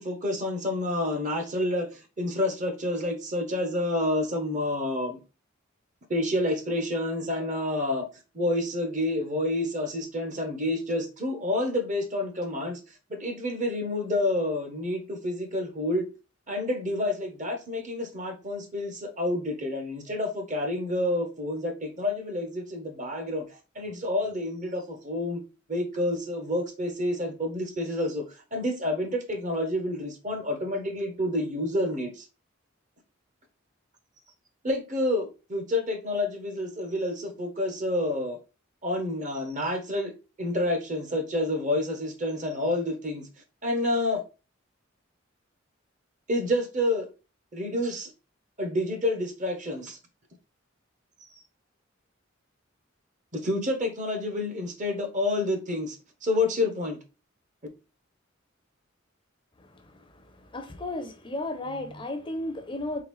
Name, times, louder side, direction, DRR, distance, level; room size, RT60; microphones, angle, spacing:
voice 1, 0.0-5.2 6.1-8.1 8.3-12.8 13.1-16.0 16.5-25.4 25.7-28.3 28.5-32.2 34.6-38.4 38.8-40.1 40.4-43.3 43.6-44.2 46.3-47.1 47.5-48.1 48.6-50.0 53.3-56.0 56.2-57.0, left 1 dB, 40° right, 0.9 m, -29 dB
voice 2, 59.6-63.0, left 1 dB, 25° left, 0.6 m, -35 dB
3.9 x 3.3 x 3.1 m
head